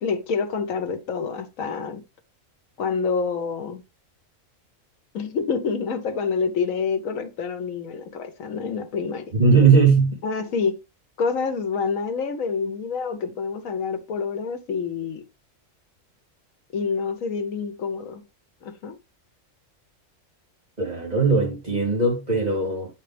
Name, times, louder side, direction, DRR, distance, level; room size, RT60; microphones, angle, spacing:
voice 1, 0.0-2.0 2.8-3.8 5.1-9.3 10.2-10.8 11.2-15.2 16.7-18.2 18.6-19.0, left 5 dB, 85° left, 1.3 m, -27 dB
voice 2, 9.3-10.1 20.8-22.9, right 4 dB, 30° right, 2.8 m, -19 dB
8.9 x 4.1 x 3.3 m
omnidirectional pair, 1.4 m